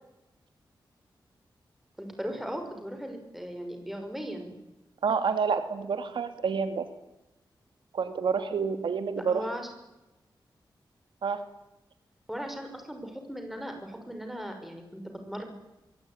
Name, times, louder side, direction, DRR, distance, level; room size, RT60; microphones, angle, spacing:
voice 1, 2.0-4.6 9.3-9.7 12.3-15.4, equal, ahead, 5 dB, 6.4 m, -38 dB
voice 2, 5.0-6.9 7.9-9.5 11.2-11.4, right 5 dB, 80° right, 9 dB, 2.5 m, -28 dB
24.5 x 24.5 x 10.0 m, 0.97 s
wide cardioid pair, 140°, 8 cm